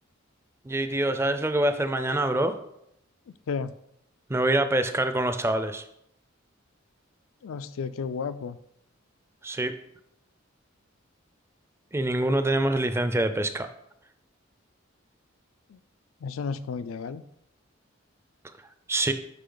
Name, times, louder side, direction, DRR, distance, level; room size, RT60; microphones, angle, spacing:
voice 1, 0.6-2.5 4.3-5.8 9.4-9.7 11.9-13.7 18.9-19.1, right 1 dB, 15° right, 9 dB, 0.4 m, -25 dB
voice 2, 7.4-8.6 15.7-15.8 16.2-17.2, left 5 dB, 80° left, 13 dB, 0.4 m, -32 dB
6.8 x 5.0 x 3.9 m, 0.77 s
head